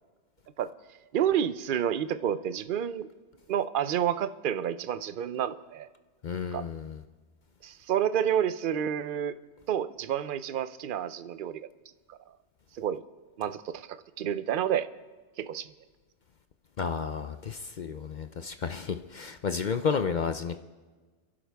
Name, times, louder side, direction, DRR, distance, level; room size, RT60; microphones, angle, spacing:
voice 1, 1.1-3.1 3.5-5.9 6.5-6.6 7.6-9.4 9.7-11.7 12.1-12.2 12.8-13.0 13.4-14.9 15.4-15.7, right 9 dB, 55° right, 13 dB, 0.7 m, -29 dB
voice 2, 6.2-7.0 16.8-20.6, left 6 dB, 55° left, 9 dB, 0.5 m, -32 dB
30.0 x 11.5 x 3.5 m, 1.4 s
omnidirectional pair, 1.3 m